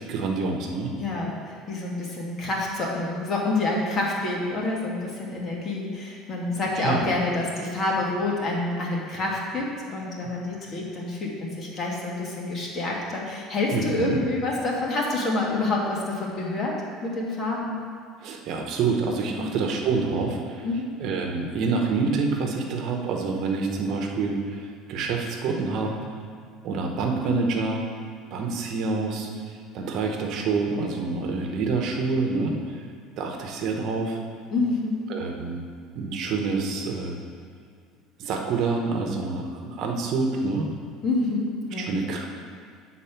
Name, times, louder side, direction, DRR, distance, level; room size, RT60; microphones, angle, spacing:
voice 1, 0.0-0.9 6.8-7.1 10.2-10.3 13.7-14.2 18.2-20.7 21.0-26.1 26.6-27.8 28.3-29.3 29.7-32.8 33.2-34.2 35.1-35.6 36.0-37.2 38.2-40.7 41.8-42.3, right 4 dB, 55° right, 2 dB, 1.0 m, -27 dB
voice 2, 1.0-16.7 17.0-17.8 19.4-19.6 20.6-21.0 34.5-35.1 41.0-42.0, left 2 dB, 40° left, -2 dB, 1.7 m, -28 dB
8.4 x 4.2 x 5.8 m, 2.2 s
cardioid pair, 125°, 0 cm